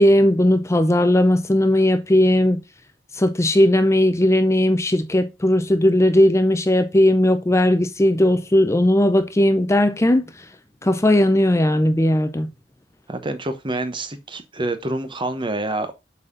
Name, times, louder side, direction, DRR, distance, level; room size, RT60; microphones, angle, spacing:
voice 1, 0.0-2.6 3.2-10.3 10.8-12.5, left 1 dB, 15° left, 0.6 m, -17 dB
voice 2, 13.1-15.9, right 2 dB, 25° right, 0.9 m, -27 dB
7.4 x 4.2 x 3.8 m
head